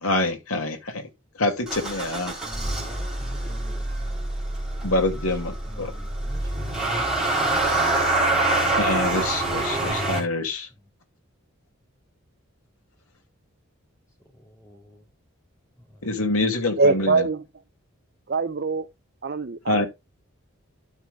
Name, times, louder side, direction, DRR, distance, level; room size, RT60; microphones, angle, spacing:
voice 1, 0.0-1.1 1.4-2.3 4.8-5.9 8.8-10.7 16.0-17.3 19.7-19.9, left 2 dB, 85° left, 2.5 m, -25 dB
Motor vehicle (road) / Engine starting, 1.7-10.2, right 2 dB, 5° right, 3.7 m, -26 dB
voice 2, 2.4-4.3 5.1-5.4 5.6-7.9 14.3-15.0 15.8-16.1, equal, 15° left, 3.1 m, -47 dB
voice 3, 16.8-17.4 18.3-18.9 19.2-19.8, right 3 dB, 45° right, 0.5 m, -23 dB
12.5 x 6.0 x 2.4 m
head